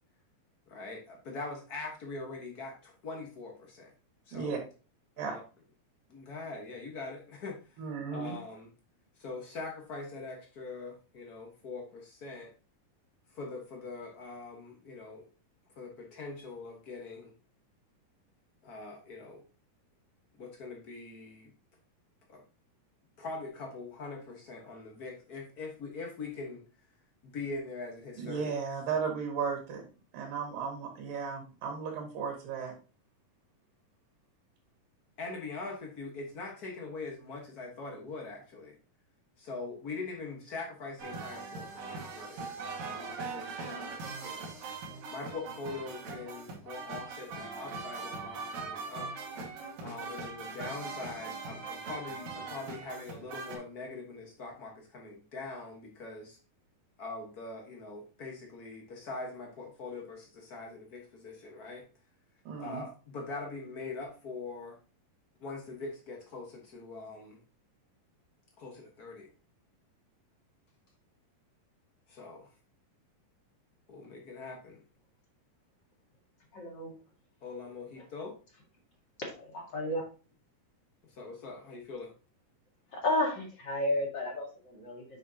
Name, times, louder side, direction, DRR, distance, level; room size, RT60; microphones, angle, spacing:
voice 1, 0.7-3.9 4.3-4.6 5.2-5.4 6.1-7.8 8.1-8.7 9.2-12.5 13.3-15.3 15.7-17.3 18.6-19.4 20.4-21.5 22.3-22.4 23.2-26.6 27.2-28.5 35.2-38.8 39.4-42.5 42.8-44.0 44.2-44.5 45.1-49.1 49.8-56.4 57.0-61.8 62.6-64.8 65.4-67.4 68.6-69.3 72.1-72.5 73.9-74.8 77.4-78.3 81.0-82.1, left 3 dB, 80° left, 1 dB, 0.8 m, -42 dB
voice 2, 7.8-8.4 28.2-29.9 30.1-32.7 62.4-62.8, right 6 dB, 80° right, 1 dB, 3.4 m, -35 dB
sound 1, 41.0-53.6, right 4 dB, 60° right, 2.4 m, -41 dB
voice 3, 76.5-76.9 79.2-80.0 82.9-85.0, left 1 dB, 40° left, 0 dB, 2.0 m, -32 dB
8.0 x 6.0 x 2.8 m, 0.34 s
omnidirectional pair, 3.9 m